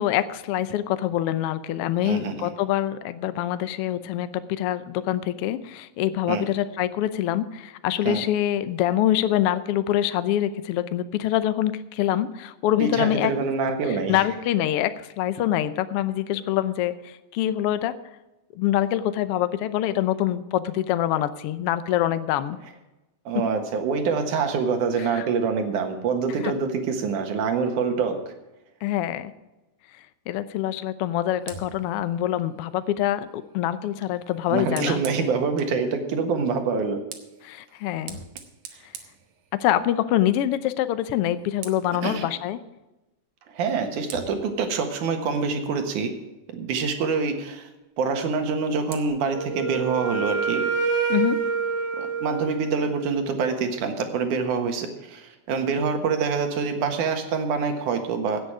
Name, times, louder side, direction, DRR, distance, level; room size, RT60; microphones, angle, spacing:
voice 1, 0.0-13.3 14.1-17.9 18.5-22.6 25.1-25.3 26.4-26.5 28.8-29.3 30.3-35.0 37.4-38.2 39.6-42.6 51.1-51.4, left 12 dB, 80° left, 12 dB, 1.3 m, -25 dB
voice 2, 2.0-2.5 6.3-6.4 8.1-8.2 12.8-14.2 23.3-28.3 34.5-37.0 42.0-42.3 43.5-46.1 46.5-47.7 48.0-50.6 51.9-58.4, right 5 dB, 85° right, 5 dB, 3.0 m, -26 dB
Fire, 31.4-35.8 36.7-40.0 40.3-40.6 40.9-42.0 43.4-43.5 44.1-46.4 48.3-49.1, right 6 dB, 65° right, 2.3 m, -45 dB
Wind instrument woodwind instrument, 49.3-53.1, right 5 dB, 45° right, 0.8 m, -27 dB
16.5 x 8.1 x 4.8 m, 1.0 s
omnidirectional pair, 3.5 m